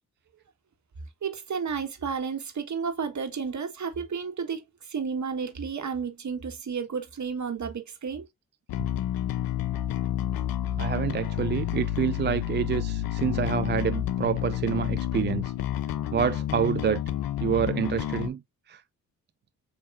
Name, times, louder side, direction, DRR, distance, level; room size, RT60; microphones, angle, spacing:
voice 1, 1.2-8.2, right 6 dB, 50° right, 1.5 m, -32 dB
Bass guitar, 8.7-18.3, left 12 dB, 65° left, 0.7 m, -30 dB
voice 2, 10.8-15.5 16.1-17.0 17.4-18.4 18.7-18.8, right 8 dB, 30° right, 0.4 m, -27 dB
7.5 x 2.8 x 2.5 m
supercardioid pair, 45°, 37 cm